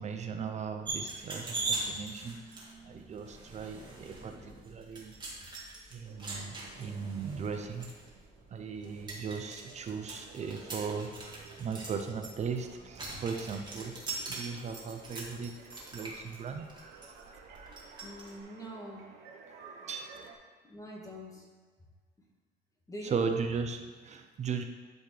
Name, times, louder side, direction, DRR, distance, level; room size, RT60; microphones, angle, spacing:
voice 1, 0.0-5.1 5.9-7.9 8.5-14.0 14.3-15.5 15.9-16.7 17.1-17.2 19.5-19.6 19.8-20.2 23.0-24.6, right 5 dB, 40° right, 6 dB, 0.6 m, -37 dB
sound 1, 0.9-18.3, right 3 dB, 25° right, 2.0 m, -42 dB
sound 2, 6.0-20.3, right 5 dB, 75° right, 1.1 m, -55 dB
voice 2, 18.0-19.0 20.6-21.4 22.9-23.2, equal, 20° left, -1 dB, 1.6 m, -44 dB
12.0 x 4.3 x 3.3 m, 1.5 s
cardioid pair, 110°, 17 cm